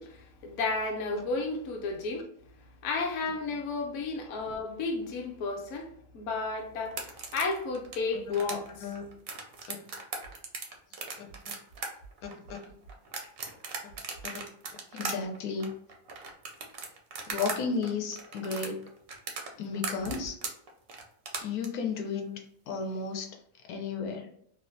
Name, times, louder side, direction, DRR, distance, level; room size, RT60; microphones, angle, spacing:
voice 1, 0.0-2.3 2.8-8.7 20.1-20.2, left 3 dB, 65° left, 0.9 m, -33 dB
sound 1, 6.9-17.6 17.8-21.7, right 4 dB, 65° right, 0.6 m, -38 dB
voice 2, 8.5-9.0 9.7-9.8 11.2-11.3 12.2-12.7 14.2-14.4 14.9-15.7 17.3-18.8 19.6-20.3 21.4-23.4 23.7-24.3, left 5 dB, 85° left, 1.1 m, -34 dB
3.0 x 2.1 x 2.6 m
omnidirectional pair, 1.6 m